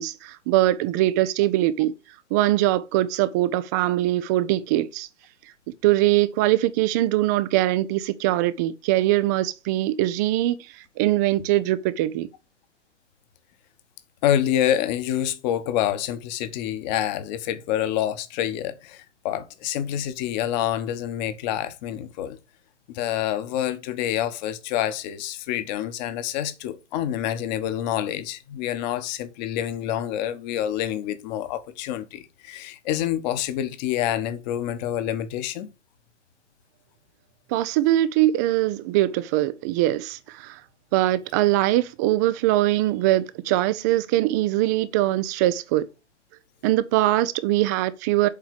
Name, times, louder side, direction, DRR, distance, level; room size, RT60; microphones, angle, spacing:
voice 1, 0.0-1.9 2.3-5.1 5.8-10.6 11.0-12.3 37.5-40.6 40.9-45.9 46.6-48.3, right 15 dB, 15° right, 0.3 m, -22 dB
voice 2, 14.2-22.4 22.9-35.7, left 11 dB, 35° left, 1.2 m, -27 dB
7.3 x 4.7 x 6.9 m
hypercardioid pair, 120°, 36 cm